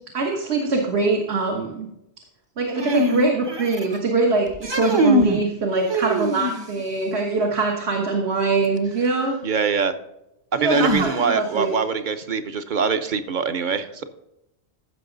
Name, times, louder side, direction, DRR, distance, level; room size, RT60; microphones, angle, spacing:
voice 1, 0.1-1.9 2.6-9.4 10.6-11.7, right 3 dB, 75° right, 1 dB, 1.6 m, -23 dB
sound 1, 2.8-4.0 4.5-5.4 5.9-6.8 8.8-8.9 10.7-11.5, right 1 dB, 30° right, 0.7 m, -23 dB
voice 2, 9.4-9.9 10.5-14.0, right 5 dB, 50° right, 10 dB, 0.9 m, -23 dB
14.5 x 6.0 x 3.9 m, 0.87 s
omnidirectional pair, 1.1 m